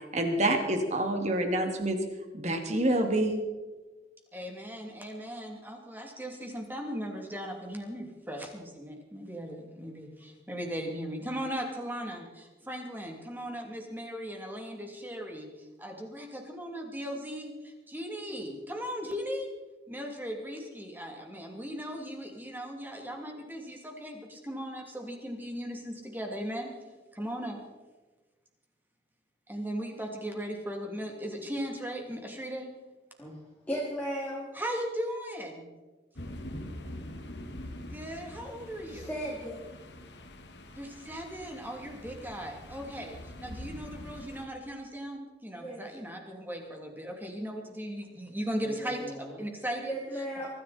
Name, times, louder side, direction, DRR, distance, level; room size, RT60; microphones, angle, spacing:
voice 1, 0.1-2.0 2.3-3.4, right 1 dB, 40° right, 4 dB, 2.6 m, -27 dB
voice 2, 4.3-15.5 15.8-19.5 19.9-26.7 27.1-27.6 29.5-32.7 34.5-35.7 37.9-39.1 40.7-50.2, equal, 10° right, 2 dB, 2.9 m, -38 dB
voice 3, 33.7-34.5 38.9-39.6 45.6-45.8 49.1-49.2 49.8-50.5, equal, 10° left, -6 dB, 3.3 m, -35 dB
sound 1, 36.1-44.4, left 1 dB, 70° left, 1.9 m, -44 dB
24.0 x 14.0 x 4.3 m, 1.2 s
head